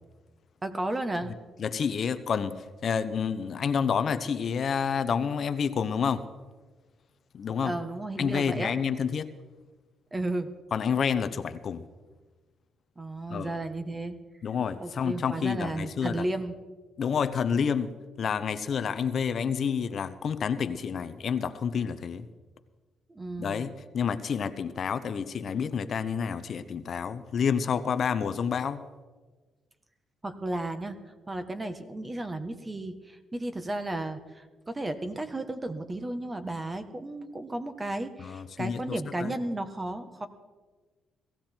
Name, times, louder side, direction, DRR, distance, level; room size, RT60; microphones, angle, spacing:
voice 1, 0.6-1.3 7.6-8.7 10.1-10.5 13.0-14.2 14.8-16.5 23.1-23.7 30.2-31.0 31.3-40.3, right 2 dB, 20° right, 9 dB, 1.4 m, -33 dB
voice 2, 1.6-6.2 7.3-7.7 8.2-9.3 10.7-11.8 13.3-13.5 14.4-16.2 17.0-17.9 18.2-22.2 23.4-28.8 38.2-39.3, left 6 dB, 55° left, 11 dB, 0.8 m, -29 dB
18.0 x 15.0 x 4.5 m, 1.3 s
cardioid pair, 90°, 0 cm